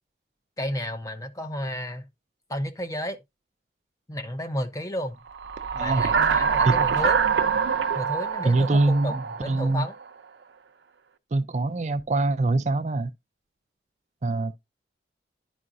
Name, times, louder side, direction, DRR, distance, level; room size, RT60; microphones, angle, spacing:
voice 1, 0.6-2.1 2.5-3.2 4.1-5.2 5.7-7.2 7.9-10.0, equal, 20° left, 0.8 m, -32 dB
sound 1, 5.4-10.0, right 6 dB, 85° right, 0.7 m, -25 dB
voice 2, 8.5-9.9 11.3-13.1 14.2-14.5, right 2 dB, 40° right, 0.4 m, -23 dB
11.0 x 4.9 x 2.5 m
head